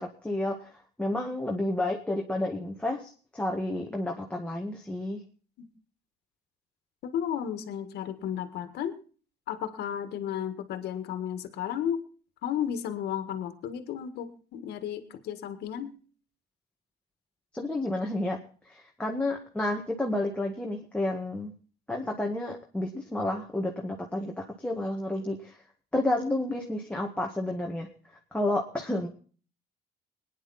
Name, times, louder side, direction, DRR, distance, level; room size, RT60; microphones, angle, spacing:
voice 1, 0.0-5.2 17.5-18.4 18.6-21.5 21.9-25.6 25.9-27.9 28.3-29.1, left 1 dB, 5° left, 0 dB, 1.9 m, -31 dB
voice 2, 7.0-9.0 9.5-12.0 12.4-15.9, left 9 dB, 75° left, 9 dB, 1.8 m, -33 dB
20.5 x 10.0 x 4.2 m, 0.41 s
cardioid pair, 110°, 17 cm